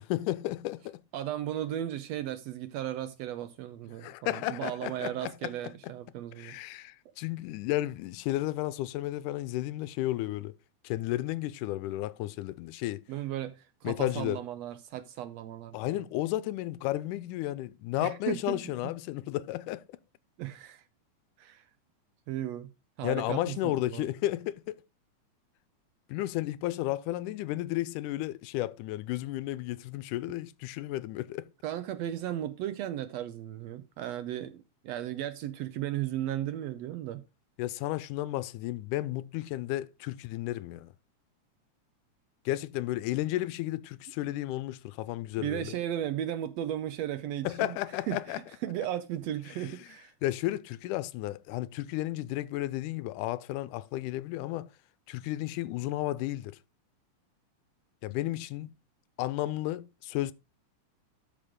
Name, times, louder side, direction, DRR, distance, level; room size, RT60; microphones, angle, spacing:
voice 1, 0.0-1.0 4.0-5.5 5.8-5.9 6.4-10.5 10.8-13.0 13.8-14.4 15.7-19.8 23.0-24.8 26.1-31.5 37.6-40.9 42.5-45.8 47.4-48.4 49.6-49.8 50.2-54.7 55.1-56.6 58.0-58.7 59.2-60.3, left 16 dB, 90° left, 2.1 m, -33 dB
voice 2, 1.1-6.6 13.1-16.0 18.0-18.7 20.4-20.8 21.4-21.7 22.3-22.7 23.0-24.1 31.6-37.2 45.4-47.8 48.1-50.1, right 12 dB, 80° right, 1.5 m, -35 dB
12.0 x 5.1 x 3.6 m
omnidirectional pair, 3.5 m